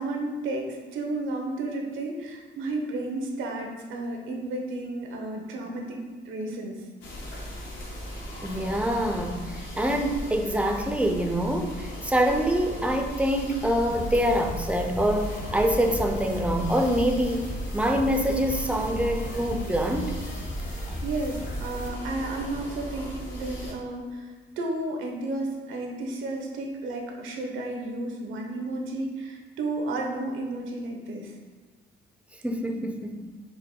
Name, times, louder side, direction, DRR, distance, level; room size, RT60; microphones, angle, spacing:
voice 1, 0.0-6.8 20.7-31.3, right 2 dB, 80° right, 1 dB, 0.7 m, -32 dB
sound 1, 7.0-23.7, equal, 70° left, 0.9 m, -38 dB
voice 2, 8.4-17.5 17.7-20.1 32.4-33.1, equal, 5° right, 3 dB, 0.4 m, -25 dB
sound 2, 13.9-21.9, equal, 40° left, 0.9 m, -35 dB
4.6 x 2.2 x 3.6 m, 1.3 s
cardioid pair, 90°, 20 cm